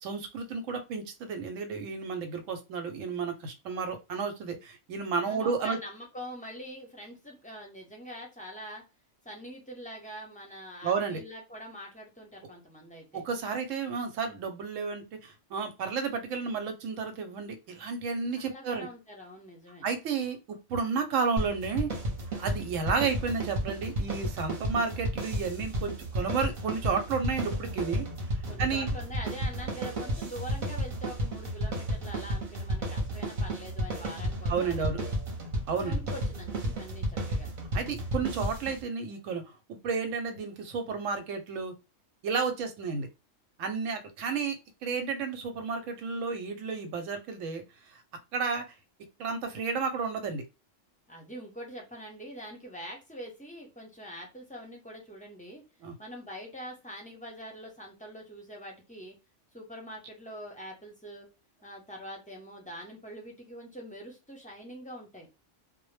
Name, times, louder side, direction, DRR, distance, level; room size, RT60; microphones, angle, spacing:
voice 1, 0.0-5.8 10.8-11.2 13.1-18.9 19.8-21.9 22.4-28.1 28.6-28.9 34.5-35.0 35.7-36.0 37.7-39.4 39.7-41.7 42.2-43.1 43.6-48.0 48.3-48.7 49.2-50.4 55.8-55.9, right 5 dB, 85° right, 6 dB, 1.0 m, -32 dB
voice 2, 5.2-8.8 9.2-13.2 18.4-19.9 28.5-35.2 35.8-37.5 51.1-55.6 56.0-59.2 59.5-61.3 61.6-65.3, equal, 10° left, -1 dB, 0.4 m, -44 dB
sound 1, 21.4-38.8, right 1 dB, 45° right, 0.8 m, -33 dB
2.1 x 2.1 x 3.1 m, 0.28 s
omnidirectional pair, 1.3 m